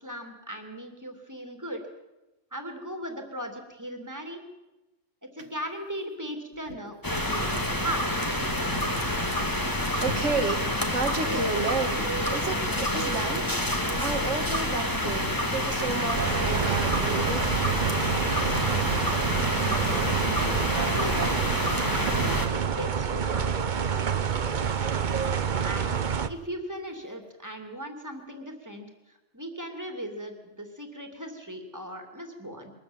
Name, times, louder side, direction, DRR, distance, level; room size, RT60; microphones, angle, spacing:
voice 1, 0.0-1.8 2.5-4.4 5.3-8.1 20.7-21.4 21.9-24.3 25.6-25.9 26.2-32.7, right 1 dB, 15° right, 5 dB, 2.7 m, -38 dB
sound 1, 7.0-22.5, left 1 dB, 15° left, 1.9 m, -28 dB
voice 2, 9.8-17.8 25.1-25.2, right 3 dB, 65° right, 7 dB, 2.3 m, -32 dB
sound 2, 16.1-26.3, right 7 dB, 40° right, 0.9 m, -28 dB
22.5 x 14.0 x 8.9 m, 1.1 s
omnidirectional pair, 1.3 m